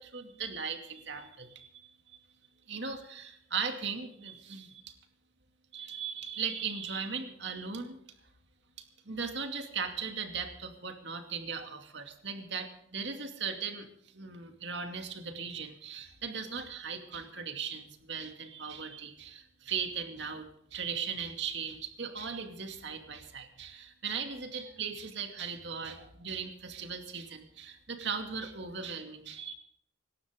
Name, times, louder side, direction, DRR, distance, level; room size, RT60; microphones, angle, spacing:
voice 1, 0.0-2.2 2.7-5.0 5.7-8.0 8.8-13.9 14.1-20.5 20.7-29.5, right 6 dB, 60° right, 5 dB, 2.5 m, -38 dB
26.5 x 12.5 x 3.7 m, 0.70 s
head